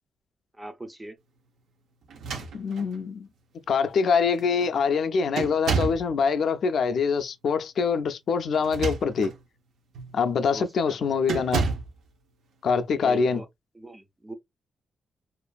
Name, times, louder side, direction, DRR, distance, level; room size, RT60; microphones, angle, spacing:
voice 1, 0.5-1.2 10.5-11.1 13.0-13.5 13.7-14.3, right 1 dB, 10° right, 0.4 m, -41 dB
sound 1, 2.1-3.0 3.9-4.0 4.3-4.7 5.4-6.1 8.5-9.4 9.9-10.2 11.3-12.0, right 4 dB, 90° right, 0.5 m, -30 dB
voice 2, 2.5-3.3 3.7-9.3 10.1-11.6 12.6-13.4, left 5 dB, 60° left, 0.3 m, -24 dB
2.5 x 2.4 x 2.2 m
wide cardioid pair, 150°, 0 cm